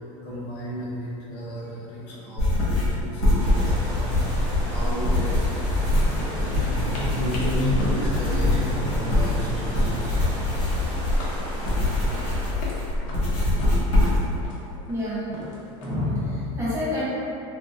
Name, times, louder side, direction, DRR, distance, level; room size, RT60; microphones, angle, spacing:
voice 1, 0.2-5.5 5.7-11.1, equal, 55° left, -6 dB, 0.8 m, -32 dB
sound 1, 1.6-1.7 2.1-2.4 2.7-2.9 3.2-4.0 4.3-5.7 6.2-9.7 9.9-10.3 10.7-12.8 13.1-15.9, left 1 dB, 90° left, 0.8 m, -41 dB
sound 2, 2.4-14.4, left 1 dB, 35° left, 1.3 m, -24 dB
sound 3, 3.4-12.5, right 1 dB, 45° right, 1.3 m, -36 dB
voice 2, 14.9-17.0, left 1 dB, 15° right, -10 dB, 0.8 m, -28 dB
3.5 x 2.5 x 2.6 m, 2.9 s
supercardioid pair, 150°, 17 cm